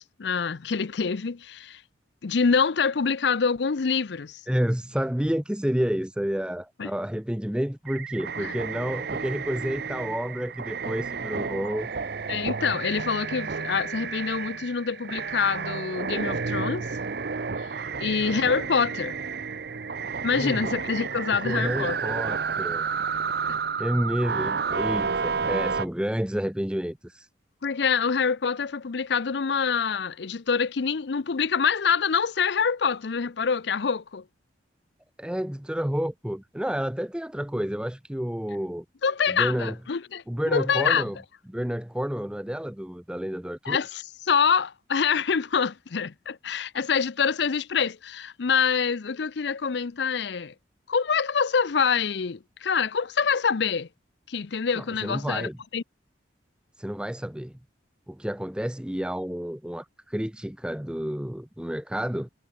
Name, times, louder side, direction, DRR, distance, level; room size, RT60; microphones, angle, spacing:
voice 1, 0.0-1.8 2.2-4.4 6.8-6.9 8.4-8.5 12.3-16.9 17.6-19.2 20.2-22.1 23.5-23.6 27.6-34.2 39.0-41.1 43.6-50.5 50.9-53.9 54.3-55.8, left 6 dB, 60° left, 0.5 m, -26 dB
voice 2, 4.5-11.9 18.2-18.3 20.3-20.7 21.3-22.9 23.8-27.3 35.2-38.8 39.3-39.8 40.3-41.2 41.5-43.8 54.7-55.6 56.8-57.5 58.1-62.3, equal, 5° right, 0.6 m, -30 dB
sound 1, 7.9-25.9, right 5 dB, 55° right, 0.7 m, -31 dB
head